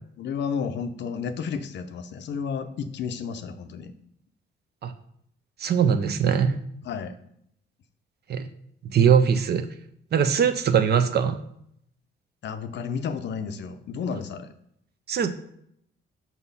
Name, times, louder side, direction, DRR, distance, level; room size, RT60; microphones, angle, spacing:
voice 1, 0.2-3.9 6.8-7.2 12.4-14.5, left 6 dB, 65° left, 9 dB, 0.6 m, -32 dB
voice 2, 5.6-6.6 8.3-8.4 8.8-9.7 10.1-11.4 15.1-15.3, right 7 dB, 55° right, 9 dB, 0.7 m, -21 dB
6.0 x 4.1 x 5.4 m, 0.72 s
cardioid pair, 90°, 20 cm